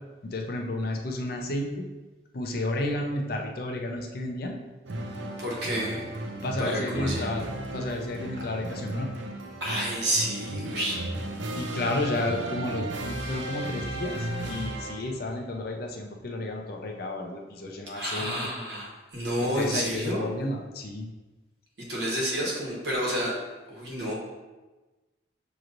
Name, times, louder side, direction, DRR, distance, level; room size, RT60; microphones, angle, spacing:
voice 1, 0.2-1.9 2.3-4.5 6.4-7.4 7.7-9.1 11.6-18.3 19.4-21.1, left 1 dB, 55° left, 2 dB, 0.5 m, -32 dB
sound 1, 4.9-15.3, right 1 dB, 85° right, 0.5 m, -35 dB
voice 2, 5.4-6.1 6.6-7.2 9.6-11.1 17.9-20.2 21.9-23.4 23.7-24.1, equal, 65° right, -3 dB, 1.1 m, -29 dB
6.2 x 3.0 x 2.5 m, 1.2 s
head